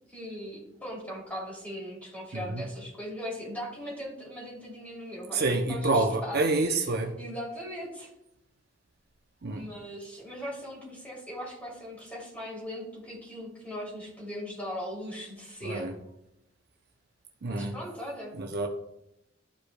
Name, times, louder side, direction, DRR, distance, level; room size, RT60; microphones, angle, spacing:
voice 1, 0.1-6.9 7.2-8.1 9.5-15.9 17.5-18.3, equal, 5° left, -4 dB, 3.0 m, -39 dB
voice 2, 2.3-2.6 5.3-7.2 9.4-9.6 15.6-15.9 17.4-17.7 18.3-18.7, right 2 dB, 55° right, 3 dB, 0.7 m, -28 dB
13.0 x 4.9 x 2.3 m, 0.82 s
head